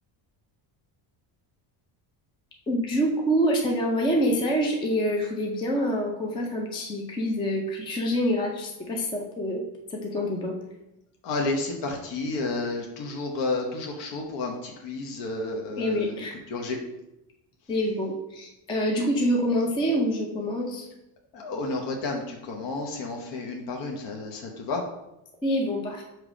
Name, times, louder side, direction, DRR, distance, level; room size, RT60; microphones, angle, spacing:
voice 1, 2.7-9.6 9.9-10.5 15.8-16.4 17.7-20.9 25.4-26.0, equal, 10° left, 1 dB, 0.3 m, -26 dB
voice 2, 11.2-16.1 16.5-16.8 21.3-24.8, left 3 dB, 55° left, 1 dB, 1.0 m, -31 dB
6.6 x 3.1 x 4.9 m, 0.90 s
cardioid pair, 175°, 50 cm